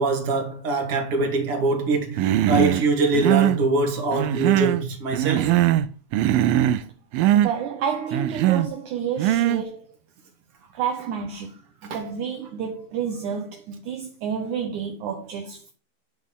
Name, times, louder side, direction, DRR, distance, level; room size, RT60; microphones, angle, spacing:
voice 1, 0.0-5.6 11.9-12.0, right 3 dB, 45° right, 2.7 m, -23 dB
Human voice, 2.2-2.8 3.1-3.6 4.1-4.8 5.1-5.9 6.1-6.8 7.1-7.5 8.1-8.7 9.2-9.6, right 13 dB, 85° right, 2.4 m, -20 dB
voice 2, 7.3-9.9 10.7-11.6 11.9-15.7, right 7 dB, 70° right, 2.2 m, -30 dB
10.5 x 4.8 x 5.4 m
omnidirectional pair, 4.1 m